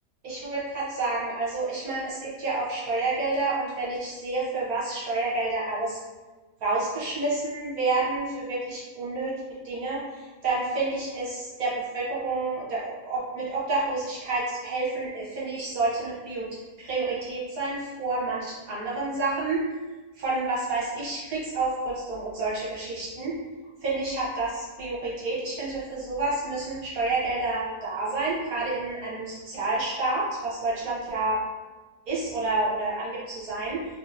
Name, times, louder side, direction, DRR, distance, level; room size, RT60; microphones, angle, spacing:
voice 1, 0.2-6.0 6.6-16.5 16.8-19.7 20.1-23.4 23.8-31.4 32.1-33.9, right 3 dB, 65° right, -6 dB, 1.2 m, -29 dB
3.1 x 2.7 x 2.4 m, 1.2 s
omnidirectional pair, 1.7 m